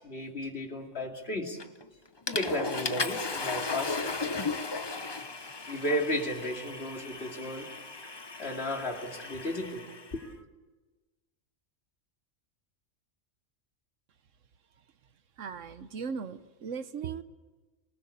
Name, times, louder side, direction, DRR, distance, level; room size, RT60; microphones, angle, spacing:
voice 1, 0.0-1.6 2.3-4.1 5.7-7.7 8.4-10.3, left 1 dB, 55° left, 2 dB, 3.0 m, -34 dB
Water / Toilet flush, 1.6-1.9 2.3-10.1, left 4 dB, 25° left, 0.7 m, -36 dB
voice 2, 15.4-17.2, right 6 dB, 75° right, 12 dB, 1.3 m, -37 dB
26.5 x 20.0 x 8.5 m, 1.2 s
omnidirectional pair, 1.3 m